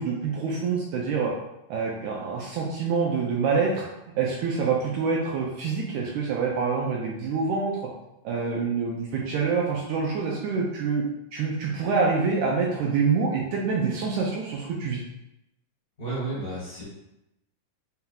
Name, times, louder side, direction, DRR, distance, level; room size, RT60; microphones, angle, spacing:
voice 1, 0.0-1.3 1.7-3.8 4.2-7.8 8.2-11.1 11.3-15.0, right 5 dB, 80° right, -2 dB, 2.0 m, -26 dB
voice 2, 16.0-16.8, right 2 dB, 35° left, -8 dB, 1.5 m, -32 dB
5.6 x 3.4 x 2.3 m, 0.87 s
omnidirectional pair, 3.7 m